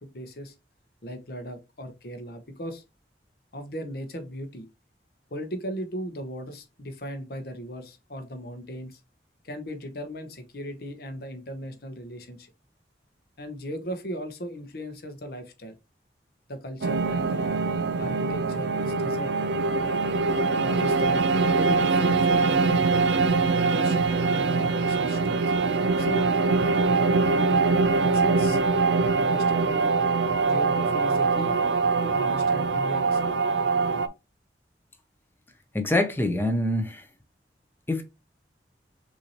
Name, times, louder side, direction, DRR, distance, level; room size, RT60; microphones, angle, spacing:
voice 1, 0.1-0.5 1.0-2.8 3.5-4.7 5.3-9.0 9.4-12.5 13.4-15.7 16.5-17.6 18.0-19.3 20.6-22.6 23.7-24.0 24.3-25.4 26.0-26.3 27.3-28.6 29.0-30.0 30.4-31.6 32.0-33.3, equal, 60° left, 0.9 m, -37 dB
sound 1, 16.8-34.1, right 4 dB, 90° right, 0.5 m, -23 dB
voice 2, 35.7-37.1 37.9-38.0, left 1 dB, 10° left, 0.6 m, -25 dB
6.1 x 2.7 x 2.9 m
head